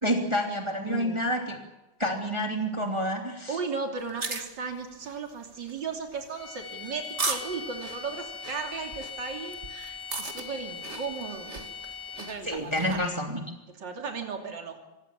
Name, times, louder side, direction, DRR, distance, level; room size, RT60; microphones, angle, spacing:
voice 1, 0.0-1.6 2.0-3.6 12.4-13.4, equal, 15° right, 3 dB, 2.8 m, -28 dB
voice 2, 0.8-1.2 3.5-11.7 12.2-13.0 13.7-14.8, right 5 dB, 70° right, 3 dB, 3.6 m, -36 dB
sound 1, 4.0-13.1, right 3 dB, 35° right, 2.4 m, -38 dB
sound 2, 6.4-12.6, left 6 dB, 70° left, 4.4 m, -41 dB
25.5 x 19.0 x 7.4 m, 1.0 s
omnidirectional pair, 2.0 m